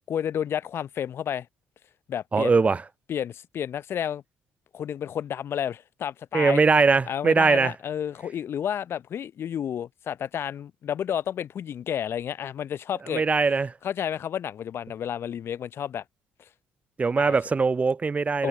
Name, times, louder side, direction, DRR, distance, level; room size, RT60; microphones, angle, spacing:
voice 1, 0.1-1.5 2.1-2.6 3.1-4.2 4.7-6.6 7.1-13.2 13.8-16.0 17.2-17.4 18.4-18.5, left 9 dB, 50° left, 0.8 m, -31 dB
voice 2, 2.3-2.8 6.3-7.7 13.1-13.7 17.0-18.5, right 4 dB, 25° right, 0.4 m, -21 dB
figure-of-eight pair, 45°, 5 cm